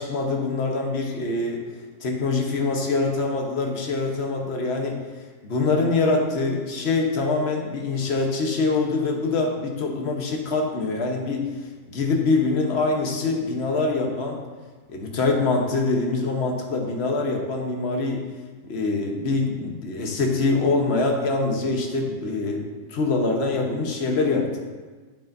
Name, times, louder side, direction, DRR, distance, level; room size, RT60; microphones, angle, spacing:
voice 1, 0.0-1.6 2.0-5.0 5.4-11.5 11.9-14.4 14.9-18.2 18.6-22.6 22.9-24.6, left 3 dB, 50° left, 1 dB, 1.2 m, -24 dB
8.6 x 8.5 x 2.6 m, 1.4 s
omnidirectional pair, 1.6 m